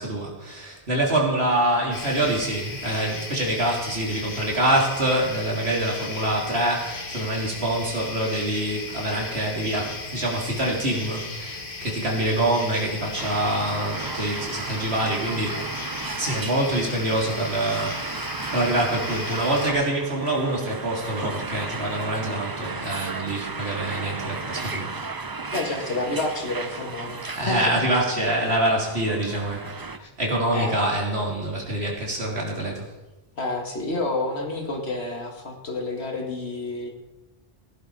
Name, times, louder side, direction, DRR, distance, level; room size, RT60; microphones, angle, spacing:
voice 1, 0.0-15.6 16.1-24.9 27.3-29.8 30.2-32.8, right 1 dB, 80° right, -2 dB, 3.7 m, -25 dB
sound 1, 1.9-19.7, left 3 dB, 55° left, 1.9 m, -36 dB
sound 2, 13.2-30.0, right 4 dB, 25° right, 0.5 m, -35 dB
voice 2, 25.5-27.8 30.0-30.1 30.5-30.8 33.4-36.9, left 2 dB, 80° left, 1 dB, 2.4 m, -29 dB
16.0 x 11.0 x 5.0 m, 1.0 s
omnidirectional pair, 1.1 m